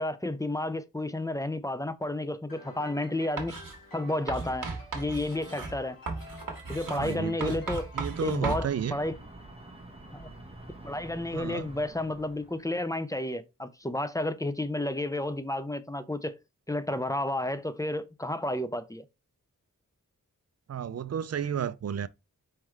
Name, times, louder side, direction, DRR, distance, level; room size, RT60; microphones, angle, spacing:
voice 1, 0.0-3.5 3.9-4.7 4.9-6.0 6.7-7.9 8.2-9.2 10.1-10.3 10.8-16.4 16.7-19.0, left 1 dB, 10° left, 0.4 m, -31 dB
sound 1, 2.5-9.1, left 1 dB, 85° left, 1.4 m, -50 dB
Writing, 3.4-3.8 4.3-8.7, right 3 dB, 65° right, 1.3 m, -36 dB
voice 2, 6.9-7.6 7.9-9.0 11.3-11.7 20.7-22.1, right 8 dB, 50° right, 0.4 m, -32 dB
sound 2, 7.9-13.0, right 1 dB, 15° right, 1.2 m, -47 dB
4.4 x 3.7 x 3.2 m
wide cardioid pair, 70°, 34 cm